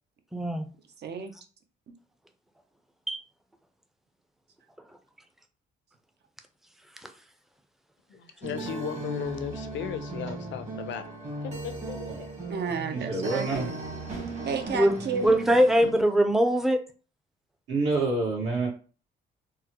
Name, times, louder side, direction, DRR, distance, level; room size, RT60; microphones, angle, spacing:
voice 1, 0.3-0.7 3.1-3.2 14.7-14.9 15.2-16.8, equal, ahead, 0.5 m, -21 dB
voice 2, 1.0-1.3 12.5-13.7 14.4-15.3, right 5 dB, 55° right, 0.7 m, -32 dB
voice 3, 8.1-11.0 11.3-12.3, left 8 dB, 70° left, 0.5 m, -36 dB
sound 1, 8.4-15.9, right 2 dB, 35° right, 1.3 m, -37 dB
voice 4, 12.9-13.7 17.7-18.7, right 3 dB, 75° right, 1.6 m, -27 dB
3.8 x 2.1 x 2.9 m
cardioid pair, 90°, 20 cm